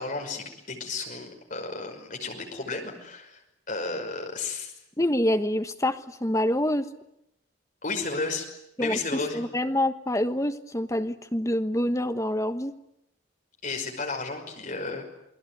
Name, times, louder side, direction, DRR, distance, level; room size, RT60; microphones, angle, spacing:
voice 1, 0.0-3.4 3.7-4.7 7.8-8.5 8.8-9.4 13.6-15.0, left 3 dB, 40° left, 3 dB, 5.6 m, -33 dB
voice 2, 5.0-6.9 8.8-12.7, left 1 dB, 15° left, 7 dB, 1.3 m, -26 dB
29.0 x 20.0 x 9.4 m, 0.86 s
head